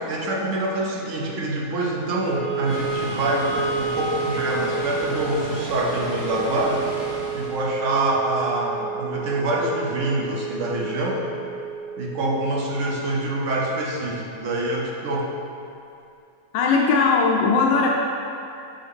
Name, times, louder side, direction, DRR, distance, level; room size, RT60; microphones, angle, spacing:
voice 1, 0.1-6.9 7.3-11.2 12.0-15.3, right 1 dB, 55° right, -2 dB, 0.9 m, -25 dB
Wind instrument woodwind instrument, 2.2-14.4, right 6 dB, 25° left, 1.6 m, -31 dB
Water, 2.7-7.7, equal, 10° right, 1.2 m, -36 dB
voice 2, 16.5-17.9, left 4 dB, 80° left, -2 dB, 1.2 m, -19 dB
6.4 x 5.5 x 3.5 m, 2.6 s
omnidirectional pair, 1.9 m